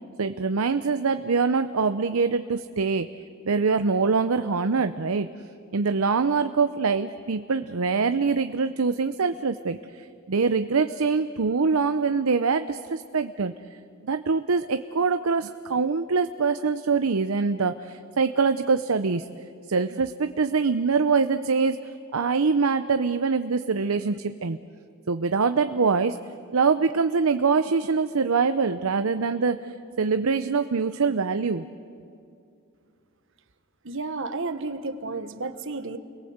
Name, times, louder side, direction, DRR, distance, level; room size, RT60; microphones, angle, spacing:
voice 1, 0.2-3.1 3.5-5.3 5.7-13.5 14.0-19.2 19.7-21.8 22.1-24.6 25.1-26.2 26.5-31.6, right 4 dB, 90° right, 10 dB, 0.7 m, -24 dB
voice 2, 33.8-36.0, right 3 dB, 65° right, 10 dB, 1.3 m, -32 dB
30.0 x 21.5 x 7.9 m, 2.5 s
head